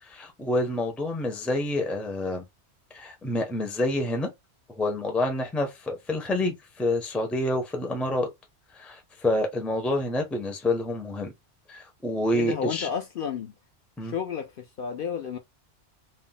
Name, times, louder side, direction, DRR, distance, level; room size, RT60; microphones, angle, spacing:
voice 1, 0.1-2.4 2.9-4.3 4.7-8.3 8.7-11.3 11.7-12.9 14.0-14.1, left 1 dB, ahead, 0.4 m, -28 dB
voice 2, 12.3-13.5 14.0-15.4, left 7 dB, 60° left, 0.6 m, -31 dB
2.5 x 2.1 x 3.8 m
omnidirectional pair, 1.2 m